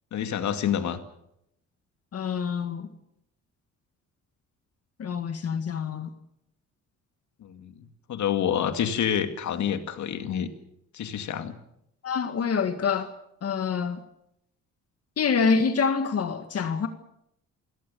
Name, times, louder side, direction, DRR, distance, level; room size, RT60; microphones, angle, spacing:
voice 1, 0.1-1.0 7.4-10.5 10.9-11.6, left 9 dB, 70° left, 2.3 m, -28 dB
voice 2, 2.1-2.9 5.0-6.1 12.0-13.1 13.4-14.0 15.2-16.9, left 5 dB, 55° left, 2.0 m, -26 dB
29.0 x 17.0 x 7.1 m
cardioid pair, 90°, 30 cm